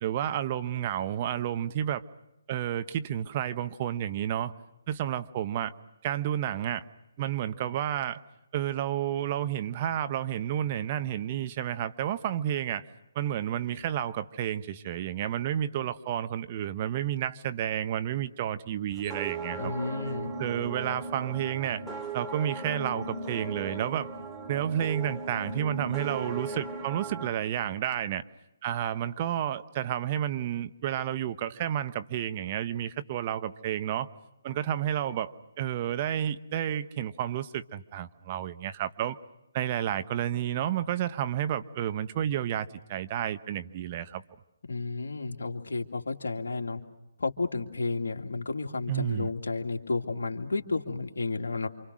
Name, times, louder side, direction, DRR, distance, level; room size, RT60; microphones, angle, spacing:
voice 1, 0.0-2.0 2.5-4.5 4.9-5.7 6.0-6.8 7.2-8.2 8.5-12.9 13.1-19.7 20.4-21.8 22.1-24.1 24.5-28.2 28.6-34.1 34.4-39.2 39.5-44.2 48.9-49.3, right 10 dB, 35° right, 12 dB, 1.1 m, -31 dB
sound 1, 18.9-27.3, right 3 dB, 5° right, 2.9 m, -37 dB
voice 2, 19.6-20.3 44.6-46.8 47.2-51.7, left 3 dB, 75° left, 4 dB, 2.4 m, -32 dB
28.0 x 26.5 x 6.3 m, 0.87 s
figure-of-eight pair, 140°, 0 cm